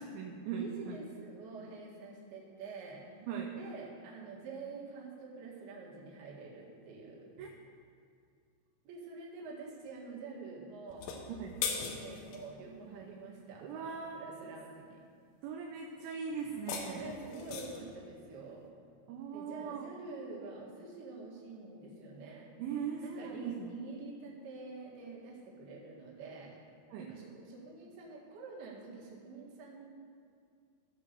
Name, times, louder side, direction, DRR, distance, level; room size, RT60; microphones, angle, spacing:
voice 1, 0.0-1.0 3.2-3.6 7.4-7.5 11.3-11.6 12.9-13.1 13.6-14.6 15.4-17.1 19.1-19.9 22.6-23.7 26.9-27.1, right 6 dB, 80° right, 1 dB, 3.0 m, -40 dB
voice 2, 0.6-3.0 3.6-7.2 8.8-11.2 11.7-15.0 16.9-18.7 19.3-22.5 23.0-26.6 26.9-29.8, right 4 dB, 60° right, -4 dB, 3.5 m, -47 dB
sound 1, 10.9-12.4 16.4-17.9, left 6 dB, 85° left, 3.6 m, -39 dB
15.0 x 5.2 x 6.8 m, 2.3 s
omnidirectional pair, 5.6 m